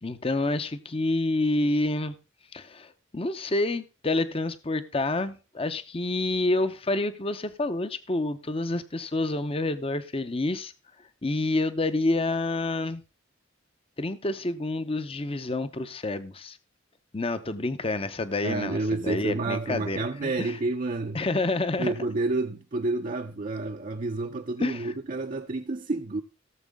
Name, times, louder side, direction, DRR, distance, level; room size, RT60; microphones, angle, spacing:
voice 1, 0.0-2.1 2.5-10.7 11.2-13.0 14.0-16.6 17.1-20.5 21.1-21.9 24.6-24.9, left 2 dB, 30° left, 0.7 m, -28 dB
voice 2, 18.4-21.2 21.8-26.2, right 2 dB, 45° right, 0.6 m, -29 dB
16.5 x 7.3 x 3.5 m
head